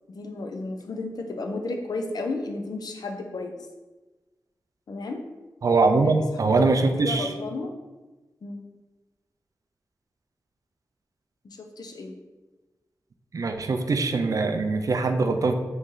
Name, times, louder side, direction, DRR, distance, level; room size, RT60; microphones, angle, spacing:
voice 1, 0.1-3.6 4.9-5.2 6.0-7.7 8.4-8.7 11.4-12.1, left 3 dB, 65° left, 4 dB, 0.4 m, -33 dB
voice 2, 5.6-7.3 13.3-15.5, right 3 dB, 50° right, 6 dB, 0.3 m, -22 dB
3.1 x 2.6 x 3.6 m, 1.2 s
wide cardioid pair, 90°, 7 cm